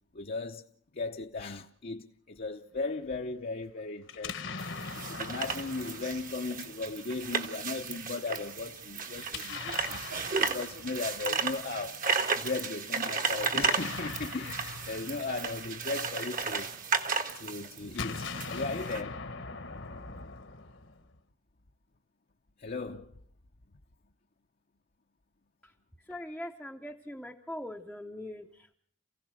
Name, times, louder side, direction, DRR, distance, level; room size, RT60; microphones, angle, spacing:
voice 1, 0.1-0.7 0.9-10.0 10.4-12.0 12.4-16.7 17.3-18.2 18.5-19.2 22.6-23.1, left 3 dB, 45° left, 0.8 m, -37 dB
Explosion, 4.1-7.1 9.2-11.4 13.3-16.7 17.8-21.2, left 4 dB, 65° left, 1.4 m, -42 dB
sound 1, 4.6-19.0, right 5 dB, 45° right, 1.5 m, -34 dB
voice 2, 26.1-28.4, left 1 dB, ahead, 0.8 m, -41 dB
28.5 x 16.0 x 6.4 m
head